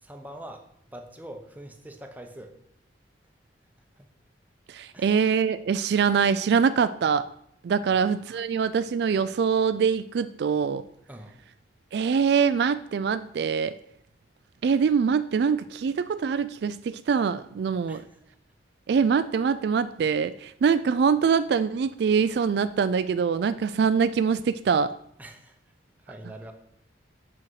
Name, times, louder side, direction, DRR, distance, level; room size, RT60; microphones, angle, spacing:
voice 1, 0.0-2.5 4.0-4.1 4.9-5.2 7.8-8.4 11.1-11.3 17.9-18.3 25.2-25.6 26.0-26.5, right 1 dB, 10° right, 4 dB, 0.9 m, -44 dB
voice 2, 4.7-7.2 7.6-10.8 11.9-13.8 14.6-18.0 18.9-24.9, right 6 dB, 60° right, 13 dB, 0.3 m, -24 dB
8.6 x 6.3 x 4.7 m, 0.71 s
head